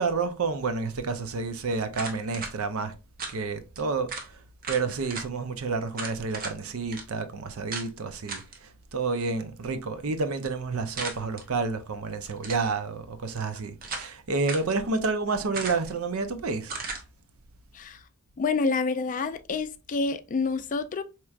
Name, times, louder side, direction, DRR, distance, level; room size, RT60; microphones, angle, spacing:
voice 1, 0.0-2.9 3.3-4.4 4.7-16.7, right 4 dB, 80° right, 0.6 m, -30 dB
sound 1, 1.9-2.5 3.2-3.4 3.8-3.9 4.1-4.3 4.6-5.3 5.9-6.6 6.9-7.0 7.7-7.9 8.3-8.6 11.0-11.4 12.3-12.7 13.4-14.1 14.5-14.7 15.5-16.0 16.7-17.0, right 4 dB, 45° right, 0.8 m, -36 dB
voice 2, 18.4-21.0, left 4 dB, 40° left, 0.3 m, -28 dB
4.5 x 2.9 x 2.4 m
head